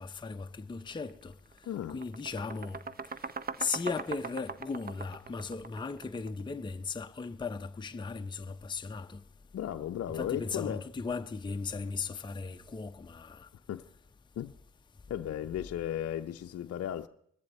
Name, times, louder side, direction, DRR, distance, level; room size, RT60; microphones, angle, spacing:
voice 1, 0.0-1.3 1.9-2.8 3.6-9.2 10.1-13.5, left 4 dB, 15° left, 0.7 m, -37 dB
sound 1, 0.9-1.1 1.5-6.4, right 5 dB, 30° right, 0.8 m, -41 dB
voice 2, 1.7-2.0 9.5-10.8 13.7-13.9 14.4-14.5 15.1-17.1, left 11 dB, 55° left, 0.6 m, -35 dB
20.5 x 13.5 x 4.3 m
supercardioid pair, 60°, 30 cm